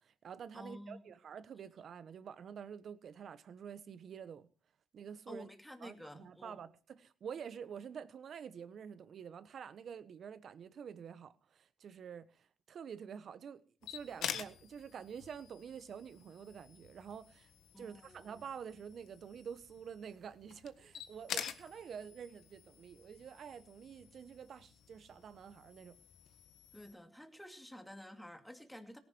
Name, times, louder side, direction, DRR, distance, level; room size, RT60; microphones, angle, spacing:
voice 1, 0.0-4.5 4.9-5.5 5.8-17.5 17.8-26.0, right 7 dB, 60° right, 1.2 m, -48 dB
voice 2, 0.5-1.1 5.3-6.6 17.7-18.3 26.7-29.0, equal, 5° left, 2.6 m, -51 dB
sound 1, 13.8-26.9, left 9 dB, 80° left, 1.4 m, -48 dB
18.0 x 11.0 x 4.6 m
cardioid pair, 90°, 0 cm